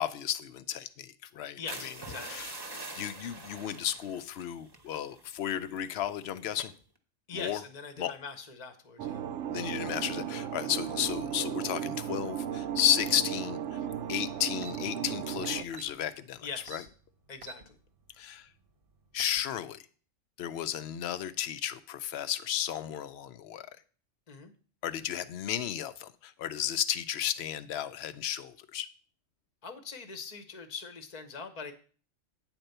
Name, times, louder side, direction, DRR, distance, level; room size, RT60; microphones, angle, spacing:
voice 1, 0.0-1.6 2.3-2.5 2.9-6.7 7.3-7.6 8.0-8.1 9.5-13.8 14.1-16.4 16.7-16.8 18.2-18.5 19.1-19.8 20.4-23.7 24.8-28.9, left 10 dB, 65° left, 14 dB, 0.8 m, -33 dB
voice 2, 1.6-2.5 7.3-9.3 10.7-10.9 16.4-16.9 17.3-17.8 24.3-24.5 29.6-31.7, left 5 dB, 35° left, 7 dB, 0.9 m, -42 dB
sound 1, 1.7-6.1 6.5-6.8, right 2 dB, 20° right, 0.9 m, -44 dB
sound 2, 9.0-15.6, right 9 dB, 75° right, 0.9 m, -35 dB
sound 3, 12.8-13.0 14.2-14.3 14.5-14.8 15.4-16.0 16.7-16.9 17.4-17.6 18.1-18.2 19.0-19.4, right 6 dB, 50° right, 1.0 m, -45 dB
9.2 x 4.4 x 6.6 m, 0.41 s
omnidirectional pair, 1.3 m